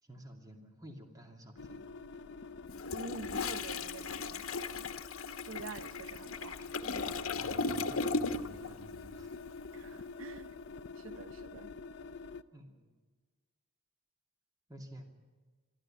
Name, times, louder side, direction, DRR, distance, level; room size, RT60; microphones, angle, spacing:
voice 1, 0.0-1.8 6.6-6.7 7.4-9.4 12.5-12.9 14.7-15.0, equal, 15° right, 2.5 m, -52 dB
sound 1, 1.6-12.4, left 4 dB, 55° left, 0.7 m, -47 dB
Toilet flush, 2.7-8.7 9.0-9.2, left 4 dB, 85° left, 1.1 m, -37 dB
voice 2, 2.9-4.9 5.5-6.7 9.7-10.6 11.0-11.7, right 4 dB, 75° right, 0.7 m, -47 dB
27.0 x 12.5 x 8.9 m
head